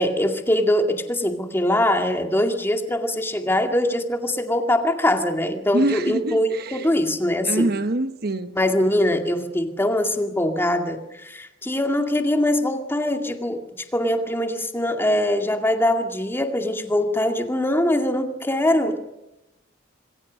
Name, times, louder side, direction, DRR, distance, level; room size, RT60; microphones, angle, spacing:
voice 1, 0.0-7.7 8.5-13.6 13.9-19.0, left 1 dB, 10° left, 2.2 m, -22 dB
voice 2, 5.7-6.9 7.4-8.6, right 2 dB, 50° right, 1.0 m, -25 dB
27.5 x 21.5 x 6.4 m
head